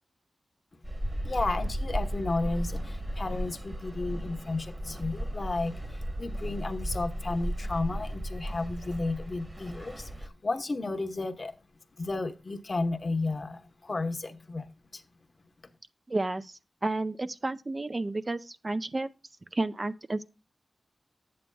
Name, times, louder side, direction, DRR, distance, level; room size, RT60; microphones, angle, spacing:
sound 1, 0.8-10.3, equal, 20° right, 1.2 m, -35 dB
voice 1, 1.2-11.5 12.0-15.0, left 3 dB, 45° left, 0.9 m, -33 dB
voice 2, 16.1-19.1 19.5-20.3, right 2 dB, 35° right, 0.5 m, -31 dB
10.5 x 8.6 x 2.3 m
cardioid pair, 60°, 0 cm